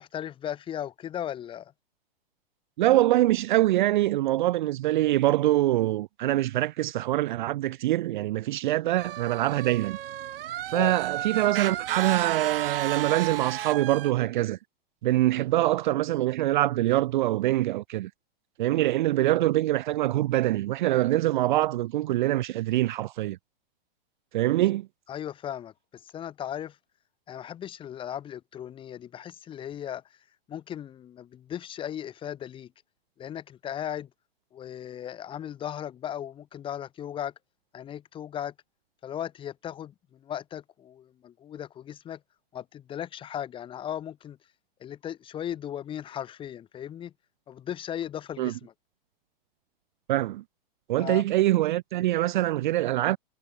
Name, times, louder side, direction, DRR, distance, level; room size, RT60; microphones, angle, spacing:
voice 1, 0.0-1.7 10.7-11.0 25.1-25.7 26.1-26.8 27.3-30.0 30.5-32.7 33.2-34.1 34.5-37.3 37.7-38.5 39.0-42.2 42.5-44.4 44.8-47.1 47.5-48.7 51.0-51.3, left 10 dB, 15° left, 2.6 m, -37 dB
voice 2, 2.8-10.0 10.7-14.6 15.0-18.1 18.6-23.4 24.3-24.9 48.4-48.5 50.1-50.4 50.9-53.2, right 15 dB, 55° right, 0.5 m, -24 dB
sound 1, 9.0-14.1, right 12 dB, 70° right, 2.1 m, -33 dB
supercardioid pair, 160°, 30 cm